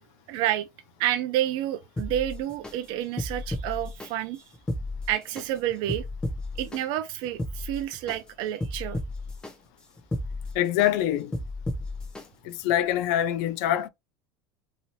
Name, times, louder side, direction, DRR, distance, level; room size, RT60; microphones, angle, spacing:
voice 1, 0.3-0.7 1.0-4.4 5.1-6.1 6.6-9.0, right 12 dB, 50° right, 0.4 m, -29 dB
sound 1, 2.0-2.7 3.2-4.1 4.5-5.5 5.9-6.8 7.3-8.2 8.6-9.5 10.0-10.9 11.3-12.2 12.7-12.8, left 1 dB, 10° left, 0.6 m, -33 dB
voice 2, 10.5-11.4 12.4-13.9, left 12 dB, 60° left, 0.4 m, -25 dB
2.8 x 2.7 x 2.9 m
cardioid pair, 165°, 11 cm